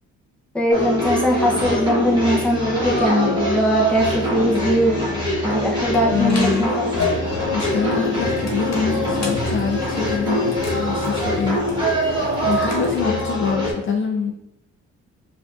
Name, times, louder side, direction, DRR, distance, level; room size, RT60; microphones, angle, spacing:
voice 1, 0.5-5.0 5.4-7.0, equal, 5° left, -2 dB, 0.7 m, -20 dB
sound 1, 0.7-13.7, equal, 15° right, 1.2 m, -23 dB
sound 2, 5.9-13.0, left 3 dB, 60° left, 1.1 m, -33 dB
voice 2, 6.1-6.7 7.5-11.6 12.0-14.3, left 5 dB, 40° left, 2 dB, 0.5 m, -25 dB
4.9 x 2.5 x 2.4 m, 0.80 s
cardioid pair, 90°, 30 cm